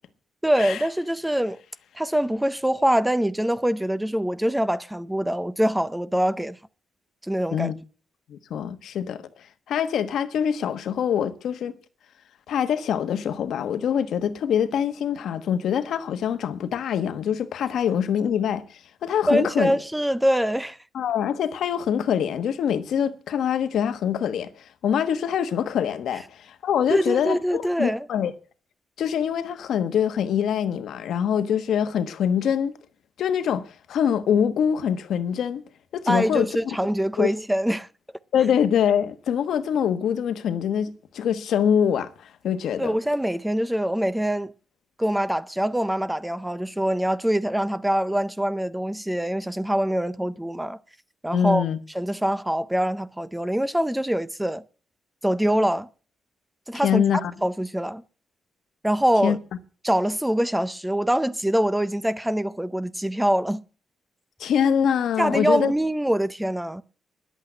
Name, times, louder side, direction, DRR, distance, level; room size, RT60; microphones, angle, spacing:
voice 1, 0.4-1.6 2.0-6.6 7.2-7.7 19.3-20.8 26.9-28.1 36.1-37.9 42.8-44.5 45.0-50.8 51.2-51.6 51.9-54.6 55.2-55.9 56.7-57.0 57.4-58.0 58.8-59.4 59.8-63.6 65.2-66.8, equal, 5° right, 0.5 m, -24 dB
voice 2, 8.3-9.3 9.7-11.7 12.5-19.8 20.9-28.3 29.0-32.7 33.2-35.6 35.9-36.5 37.2-37.3 38.3-42.9 51.3-51.8 56.7-57.3 59.2-59.4 64.4-65.7, left 8 dB, 80° left, 1.2 m, -24 dB
10.5 x 8.2 x 8.7 m
cardioid pair, 120°, 0 cm